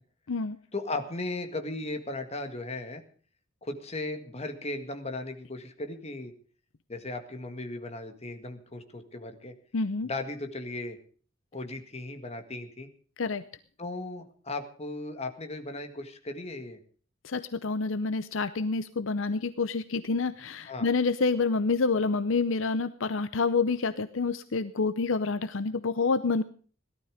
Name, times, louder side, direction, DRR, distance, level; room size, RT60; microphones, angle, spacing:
voice 1, 0.7-3.0 3.6-6.3 6.9-9.5 10.0-11.0 11.5-12.9 13.8-16.8 20.7-20.9, left 2 dB, 30° left, 7 dB, 1.8 m, -36 dB
voice 2, 9.7-10.1 13.2-13.4 17.2-26.4, left 4 dB, 65° left, 13 dB, 0.7 m, -28 dB
17.5 x 12.5 x 5.0 m, 0.42 s
head